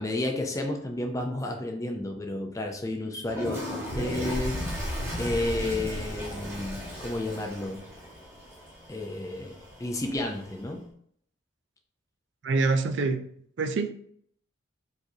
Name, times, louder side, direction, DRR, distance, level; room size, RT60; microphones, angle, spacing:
voice 1, 0.0-4.9 5.2-7.9 8.9-10.9, left 2 dB, 15° left, 3 dB, 0.5 m, -32 dB
Toilet flush, 3.2-10.8, left 1 dB, 15° right, 1.0 m, -40 dB
sound 1, 3.9-8.5, equal, 35° right, 1.2 m, -35 dB
voice 2, 12.4-13.3 13.6-13.9, right 3 dB, 65° right, 8 dB, 0.4 m, -25 dB
4.6 x 3.1 x 2.7 m, 0.65 s
head